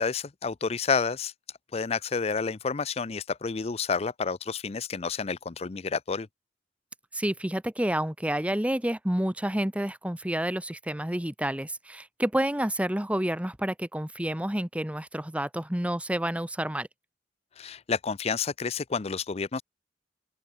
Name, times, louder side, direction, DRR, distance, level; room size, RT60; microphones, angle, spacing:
voice 1, 0.0-1.3 1.7-6.3 17.6-19.6, left 5 dB, 35° left, 0.5 m, -30 dB
voice 2, 7.1-16.9, right 1 dB, 5° right, 1.0 m, -29 dB
head